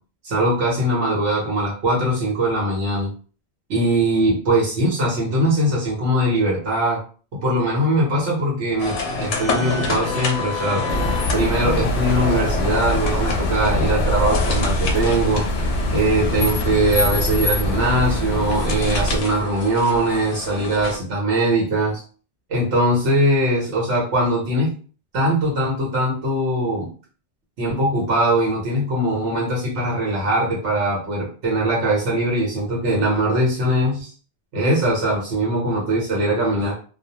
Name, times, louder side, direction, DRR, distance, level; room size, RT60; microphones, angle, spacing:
voice 1, 0.2-3.1 3.7-7.0 7.4-10.9 11.3-15.4 15.9-22.0 22.5-24.7 25.1-26.9 27.6-34.1 34.5-36.7, right 1 dB, 80° right, -3 dB, 1.1 m, -21 dB
sound 1, 8.8-21.0, left 4 dB, 85° left, 0.9 m, -28 dB
sound 2, 10.9-19.2, left 1 dB, 65° left, 0.7 m, -23 dB
2.4 x 2.0 x 2.8 m, 0.40 s
omnidirectional pair, 1.2 m